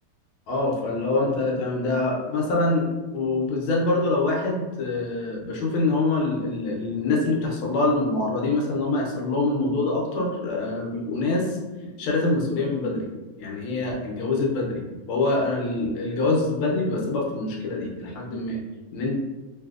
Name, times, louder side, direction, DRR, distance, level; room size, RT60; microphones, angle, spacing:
voice 1, 0.5-2.9 3.1-13.1 13.4-14.8 15.1-18.6 18.9-19.2, left 2 dB, 75° left, -1 dB, 1.5 m, -25 dB
3.3 x 2.7 x 2.4 m, 1.2 s
omnidirectional pair, 2.4 m